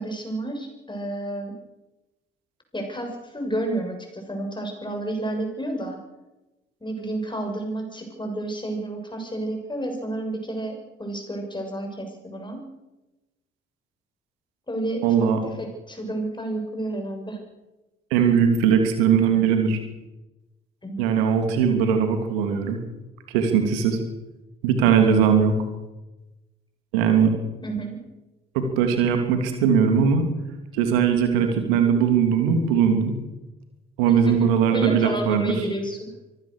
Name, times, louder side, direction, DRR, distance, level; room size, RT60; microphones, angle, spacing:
voice 1, 0.0-1.5 2.7-6.0 6.8-12.7 14.7-17.4 20.8-21.0 27.6-28.0 34.1-36.1, right 1 dB, 15° left, 3 dB, 7.0 m, -31 dB
voice 2, 15.0-15.4 18.1-19.8 21.0-22.8 23.3-24.0 24.6-25.5 26.9-27.3 28.5-30.2 30.7-33.1 34.0-35.5, right 7 dB, 75° right, 5 dB, 3.0 m, -20 dB
25.0 x 16.5 x 6.6 m, 1.0 s
figure-of-eight pair, 45°, 29 cm